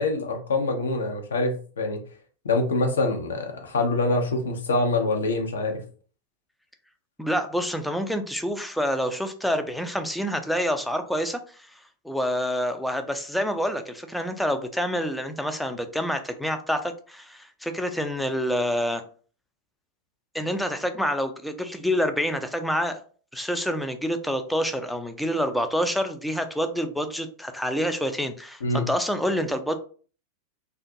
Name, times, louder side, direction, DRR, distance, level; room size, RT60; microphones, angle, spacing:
voice 1, 0.0-2.0 2.4-5.8 28.6-28.9, left 2 dB, 70° left, 4 dB, 0.5 m, -25 dB
voice 2, 7.2-11.7 12.0-19.0 20.3-23.0 23.3-29.8, equal, ahead, 7 dB, 0.3 m, -27 dB
2.4 x 2.2 x 2.6 m, 0.41 s
figure-of-eight pair, 90°, 0 cm